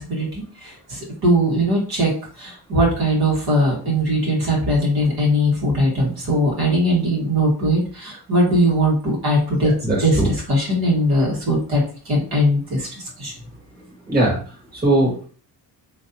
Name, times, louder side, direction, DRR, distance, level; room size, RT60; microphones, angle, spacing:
voice 1, 0.0-2.1 2.4-9.7 10.0-13.3, equal, 55° right, -3 dB, 1.8 m, -20 dB
voice 2, 9.6-10.3 14.1-14.4 14.7-15.3, right 1 dB, 20° right, -4 dB, 1.6 m, -20 dB
3.9 x 3.1 x 2.8 m, 0.39 s
cardioid pair, 130°, 44 cm